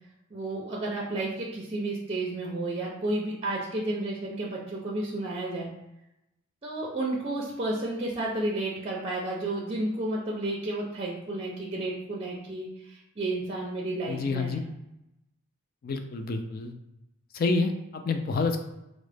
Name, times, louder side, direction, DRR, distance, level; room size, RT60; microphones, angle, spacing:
voice 1, 0.3-5.7 6.6-14.7, right 2 dB, 30° right, -3 dB, 0.4 m, -32 dB
voice 2, 14.1-14.6 15.8-16.7 17.3-18.6, left 3 dB, 45° left, 6 dB, 0.3 m, -28 dB
3.7 x 2.0 x 3.3 m, 0.89 s
head